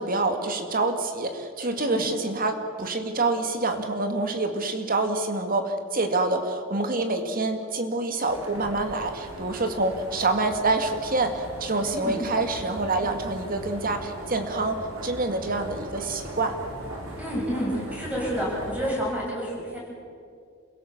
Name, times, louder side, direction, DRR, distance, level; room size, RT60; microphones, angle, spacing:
voice 1, 0.0-16.6, right 2 dB, 45° right, 6 dB, 2.0 m, -27 dB
sound 1, 8.3-18.9, right 1 dB, 85° right, 4.6 m, -39 dB
voice 2, 11.8-12.3 17.2-19.8, equal, 5° right, -4 dB, 7.9 m, -29 dB
28.0 x 16.5 x 7.3 m, 2.3 s
head